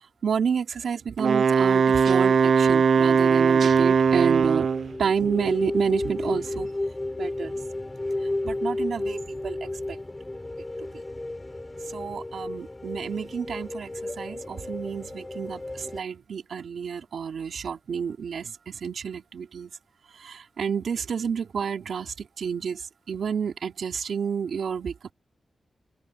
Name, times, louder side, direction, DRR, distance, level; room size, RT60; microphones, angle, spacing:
voice 1, 0.0-4.7 5.0-6.7 7.2-7.5 8.4-10.0 10.9-11.0 11.9-19.7 20.1-25.0, right 6 dB, 75° right, 3.2 m, -30 dB
Wind instrument woodwind instrument, 1.2-4.9, right 6 dB, 60° right, 0.3 m, -20 dB
sound 1, 3.7-16.0, left 2 dB, 15° left, 6.9 m, -33 dB
open air
wide cardioid pair, 175°, 0 cm